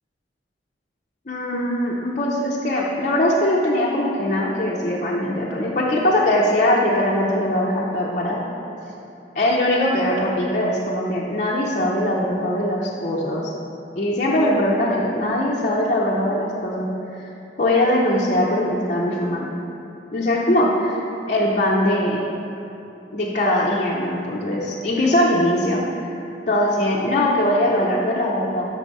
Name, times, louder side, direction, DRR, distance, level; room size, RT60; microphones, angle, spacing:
voice 1, 1.3-8.4 9.3-13.5 13.9-16.9 17.1-17.2 17.6-19.5 20.1-21.0 21.3-22.2 23.1-26.1 26.5-28.7, left 1 dB, 40° left, -5 dB, 0.6 m, -21 dB
5.3 x 4.8 x 5.3 m, 2.8 s
head